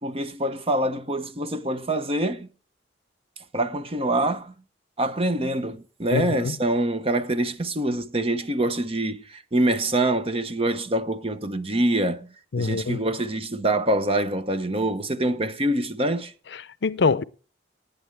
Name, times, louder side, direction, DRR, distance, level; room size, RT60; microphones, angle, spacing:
voice 1, 0.0-2.5 3.5-4.5 5.0-12.3 12.6-16.3, right 1 dB, 30° right, 0.9 m, -25 dB
voice 2, 6.1-6.5 12.5-13.0 16.5-17.2, left 4 dB, 65° left, 0.6 m, -24 dB
19.0 x 8.6 x 3.4 m
head